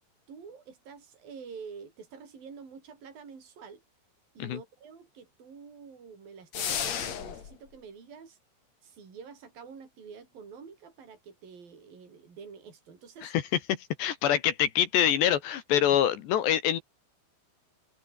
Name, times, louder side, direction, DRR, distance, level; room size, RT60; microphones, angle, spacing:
voice 1, 0.3-3.8 4.4-8.4 8.8-13.3, right 6 dB, 50° right, 7.4 m, -47 dB
sound 1, 6.5-7.5, left 8 dB, 45° left, 2.5 m, -32 dB
voice 2, 13.7-16.8, left 10 dB, 70° left, 3.6 m, -25 dB
omnidirectional pair, 5.5 m